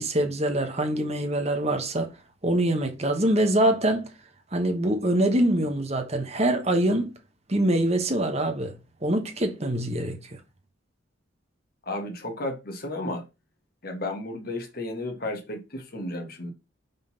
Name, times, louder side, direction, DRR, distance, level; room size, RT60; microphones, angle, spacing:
voice 1, 0.0-2.1 2.4-4.1 4.5-7.1 7.5-8.8 9.0-10.4, right 1 dB, 35° right, 1.2 m, -24 dB
voice 2, 11.9-13.2 13.8-16.5, left 1 dB, 50° left, 1.4 m, -33 dB
5.5 x 3.9 x 5.3 m
head